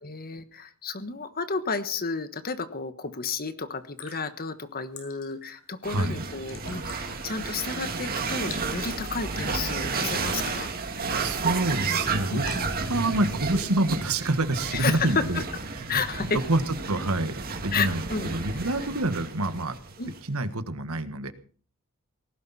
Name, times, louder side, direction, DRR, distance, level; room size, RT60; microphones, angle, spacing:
voice 1, 0.0-10.7 12.3-12.4 14.7-15.4 15.9-16.4 17.7-18.3 20.0-20.1, left 4 dB, 45° left, 11 dB, 1.3 m, -31 dB
sound 1, 3.7-13.3, left 5 dB, 70° left, 5.9 m, -49 dB
sound 2, 5.8-20.2, right 4 dB, 45° right, 2.2 m, -32 dB
voice 2, 5.9-6.2 11.2-12.5 12.8-15.4 15.7-19.8 20.3-21.3, right 2 dB, 80° right, 10 dB, 1.6 m, -27 dB
18.5 x 16.0 x 4.2 m, 0.42 s
head